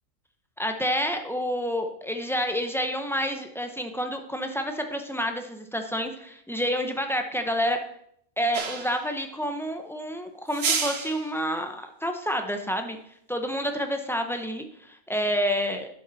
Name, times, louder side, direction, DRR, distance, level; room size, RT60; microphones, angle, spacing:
voice 1, 0.6-7.8 8.4-13.0 13.3-15.9, equal, 5° left, 5 dB, 0.6 m, -29 dB
sound 1, 8.5-9.1 10.5-11.3, right 5 dB, 55° right, 1.2 m, -29 dB
11.0 x 6.6 x 4.1 m, 0.71 s
omnidirectional pair, 1.3 m